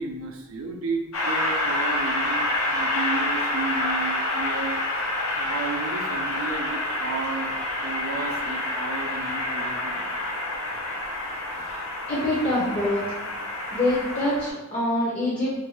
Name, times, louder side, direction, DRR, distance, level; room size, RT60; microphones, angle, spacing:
voice 1, 0.0-4.8 5.3-10.1, right 3 dB, 70° right, 4 dB, 0.4 m, -33 dB
Train, 1.1-14.5, left 1 dB, 70° left, 0.6 m, -28 dB
voice 2, 12.1-13.0 13.7-15.5, left 1 dB, 30° left, -7 dB, 0.6 m, -25 dB
2.5 x 2.2 x 3.0 m, 1.0 s
head